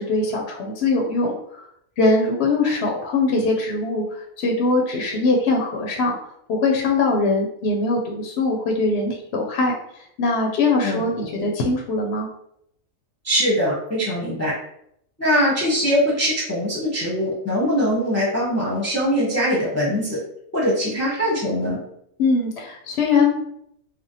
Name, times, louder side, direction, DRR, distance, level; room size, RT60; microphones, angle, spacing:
voice 1, 0.0-1.4 2.0-4.0 4.4-6.1 6.5-12.3 22.2-23.4, left 3 dB, 65° left, 0 dB, 0.7 m, -21 dB
voice 2, 13.2-14.5 15.2-20.2 20.5-21.8, equal, 15° left, -7 dB, 0.6 m, -22 dB
3.3 x 2.2 x 2.7 m, 0.73 s
omnidirectional pair, 1.4 m